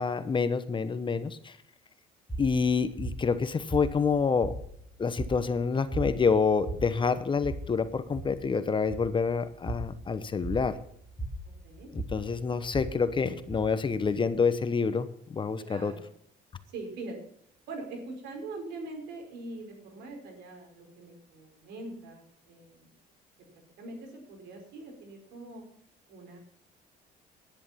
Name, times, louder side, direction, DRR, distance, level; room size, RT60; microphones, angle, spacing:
voice 1, 0.0-1.6 2.4-4.6 5.0-10.8 11.9-15.9, left 5 dB, 30° left, 12 dB, 1.1 m, -27 dB
sound 1, 2.3-14.3, right 1 dB, 10° left, 2.9 m, -39 dB
voice 2, 11.4-11.9 15.6-16.0 16.7-17.2 17.7-22.9 23.4-23.5 23.8-25.6 26.1-26.4, right 2 dB, 80° right, 3 dB, 4.9 m, -43 dB
11.0 x 11.0 x 5.8 m, 0.68 s
cardioid pair, 110°, 17 cm